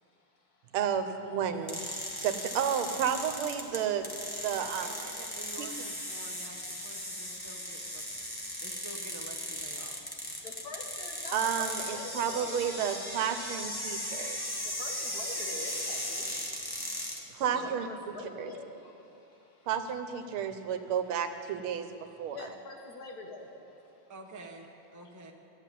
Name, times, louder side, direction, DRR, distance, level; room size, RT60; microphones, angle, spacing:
voice 1, 0.7-1.8 2.2-4.1 4.4-4.9 5.6-5.7 11.3-14.4 17.3-17.9 18.4-18.5 19.7-21.9 22.2-22.5, right 8 dB, 85° right, 8 dB, 1.7 m, -31 dB
sound 1, 1.7-17.2, left 1 dB, 15° left, 0.9 m, -37 dB
voice 2, 4.4-8.0 8.6-10.0 17.5-17.8 24.1-25.3, right 3 dB, 15° right, 1 dB, 0.6 m, -48 dB
voice 3, 10.4-12.6 14.1-19.7 20.3-20.5 22.1-24.1 25.0-25.1, left 3 dB, 50° left, 2 dB, 1.5 m, -46 dB
13.0 x 8.7 x 9.2 m, 2.7 s
omnidirectional pair, 2.3 m